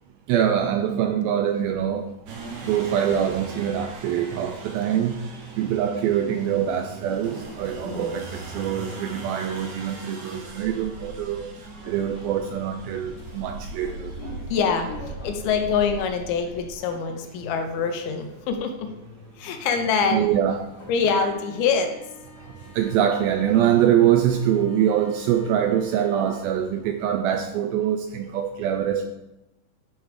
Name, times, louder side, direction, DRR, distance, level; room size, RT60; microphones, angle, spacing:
voice 1, 0.3-2.1 2.7-5.1 5.6-8.3 8.5-11.5 11.9-14.1 20.1-20.7 22.8-29.1, right 10 dB, 85° right, 6 dB, 2.1 m, -24 dB
sound 1, 2.3-16.7, right 3 dB, 60° right, 2.5 m, -39 dB
voice 2, 7.8-8.1 14.2-18.9 19.4-20.3 20.9-21.9, left 5 dB, 80° left, 6 dB, 2.5 m, -25 dB
sound 2, 11.8-26.5, left 4 dB, 50° left, 3.1 m, -47 dB
11.0 x 4.6 x 4.7 m, 0.93 s
omnidirectional pair, 4.7 m